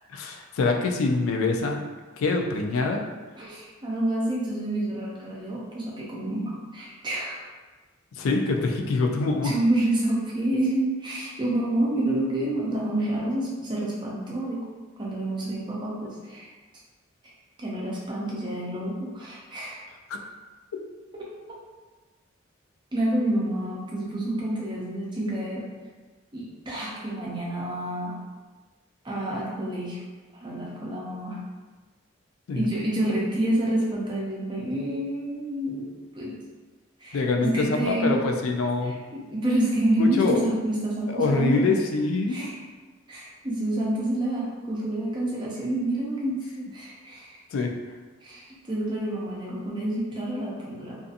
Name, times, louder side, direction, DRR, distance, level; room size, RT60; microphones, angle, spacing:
voice 1, 0.1-1.8 2.2-3.0 8.2-9.5 20.1-20.2 32.5-32.6 37.1-38.9 40.0-40.4 41.1-42.4 47.5-47.7, left 3 dB, 80° left, 3 dB, 0.3 m, -24 dB
voice 2, 3.4-7.4 9.4-14.6 15.0-16.5 17.6-19.8 21.1-21.3 22.9-25.6 26.3-28.1 29.0-30.0 30.4-31.4 32.5-35.9 36.1-36.3 37.0-38.2 38.8-41.7 42.3-42.6 43.1-47.4 48.2-51.0, right 1 dB, 20° right, -5 dB, 0.5 m, -28 dB
2.6 x 2.4 x 2.4 m, 1.3 s
head